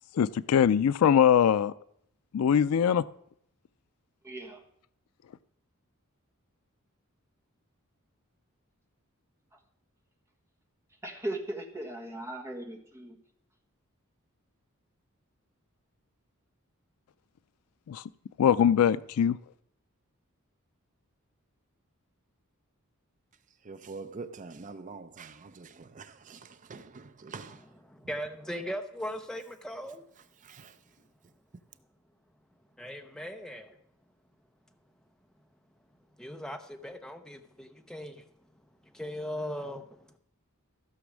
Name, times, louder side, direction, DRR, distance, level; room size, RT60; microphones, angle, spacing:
voice 1, 0.1-1.7 2.3-3.0 17.9-18.0 18.4-19.4, left 8 dB, 85° left, 0.4 m, -22 dB
voice 2, 4.2-4.6 11.0-13.2, right 1 dB, 15° right, 1.3 m, -38 dB
voice 3, 23.7-27.6 30.5-30.7, right 4 dB, 35° right, 0.5 m, -45 dB
voice 4, 27.5-30.1 32.8-33.8 36.2-38.3 38.9-40.2, equal, 5° left, 0.8 m, -39 dB
15.0 x 6.1 x 6.2 m
head